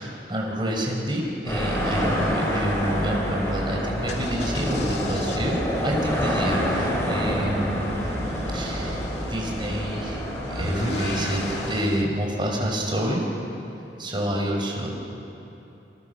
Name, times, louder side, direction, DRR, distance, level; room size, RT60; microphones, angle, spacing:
voice 1, 0.0-8.1 8.5-10.2 10.5-13.2 14.0-14.9, equal, 25° right, 0 dB, 5.2 m, -28 dB
sound 1, 1.5-11.7, equal, 15° left, 6.7 m, -28 dB
sound 2, 3.9-12.0, left 2 dB, 70° left, 2.5 m, -37 dB
28.5 x 28.5 x 7.0 m, 2.9 s
head